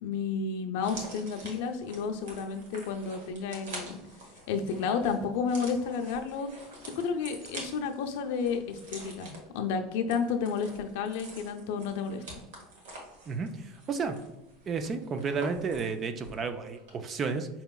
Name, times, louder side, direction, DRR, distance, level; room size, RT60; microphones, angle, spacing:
voice 1, 0.0-4.0 4.5-6.5 7.0-12.4, left 5 dB, 75° left, 5 dB, 0.5 m, -31 dB
sound 1, 0.8-16.5 16.8-16.9, right 2 dB, 90° right, 1.2 m, -47 dB
voice 2, 13.3-14.2 14.7-17.5, right 5 dB, 30° right, 8 dB, 0.4 m, -32 dB
5.5 x 2.9 x 2.3 m, 0.96 s
supercardioid pair, 140°, 0 cm